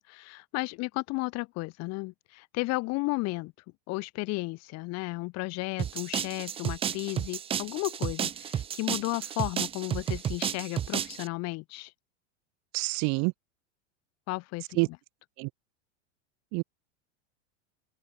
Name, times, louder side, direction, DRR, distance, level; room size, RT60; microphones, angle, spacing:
voice 1, 0.0-3.5 3.9-11.9 14.3-15.0, left 24 dB, 45° left, 2.0 m, -34 dB
sound 1, 5.8-11.3, right 9 dB, 15° right, 0.5 m, -32 dB
voice 2, 12.7-13.3 14.8-14.9 15.4-15.5 16.5-16.6, right 32 dB, 45° right, 1.2 m, -27 dB
open air
supercardioid pair, 145°, 36 cm